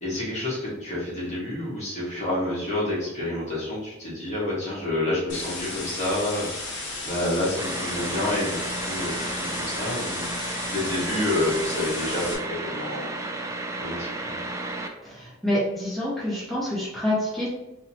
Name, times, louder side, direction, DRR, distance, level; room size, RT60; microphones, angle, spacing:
voice 1, 0.0-10.3 10.6-13.1 13.8-14.4, left 1 dB, 35° left, -7 dB, 1.5 m, -29 dB
sound 1, 5.3-12.3, left 2 dB, 55° left, 1.2 m, -34 dB
sound 2, 7.6-14.9, right 2 dB, 15° right, 0.3 m, -33 dB
voice 2, 15.0-17.5, left 1 dB, ahead, -10 dB, 1.4 m, -27 dB
3.9 x 2.9 x 2.9 m, 0.97 s
head